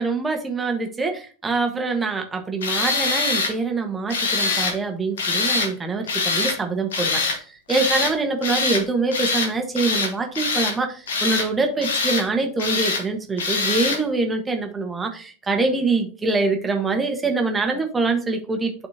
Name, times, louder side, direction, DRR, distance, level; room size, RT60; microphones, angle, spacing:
voice 1, 0.0-18.9, right 3 dB, 15° right, 4 dB, 1.4 m, -24 dB
Tools, 2.6-3.5 4.1-4.8 5.2-5.7 6.1-6.6 6.9-7.4 7.7-8.1 8.4-8.8 9.1-9.5 9.8-10.8 11.1-11.5 11.8-12.3 12.6-13.0 13.4-14.0, left 4 dB, 60° left, 1.2 m, -23 dB
10.5 x 4.3 x 2.9 m, 0.38 s
figure-of-eight pair, 90°, 0 cm